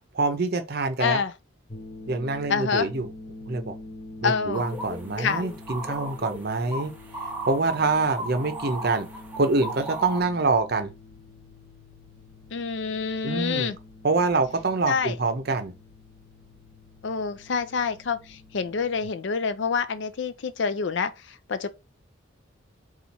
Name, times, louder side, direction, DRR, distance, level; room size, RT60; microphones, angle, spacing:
voice 1, 0.1-1.2 2.1-3.1 3.5-3.8 4.2-6.9 7.5-9.1 9.4-10.9 13.2-13.7 14.0-15.7, right 3 dB, 50° right, 0.6 m, -25 dB
voice 2, 1.0-1.3 2.5-2.9 4.2-4.6 5.2-5.4 12.5-13.8 14.9-15.2 17.0-21.7, left 5 dB, 60° left, 0.5 m, -27 dB
sound 1, 1.7-19.1, left 2 dB, 25° left, 1.0 m, -46 dB
sound 2, 4.5-10.2, equal, 10° right, 0.6 m, -36 dB
4.1 x 2.4 x 4.2 m
head